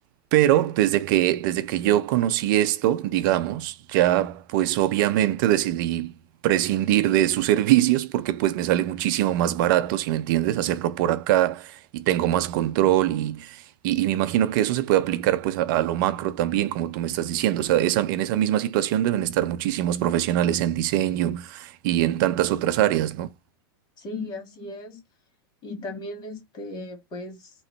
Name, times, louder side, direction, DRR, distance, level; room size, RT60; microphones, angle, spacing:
voice 1, 0.3-6.1 6.4-23.3, right 13 dB, 55° right, 0.6 m, -23 dB
voice 2, 24.0-25.0 25.6-27.5, left 2 dB, 35° left, 2.7 m, -36 dB
3.8 x 3.1 x 4.4 m
hypercardioid pair, 125°, 13 cm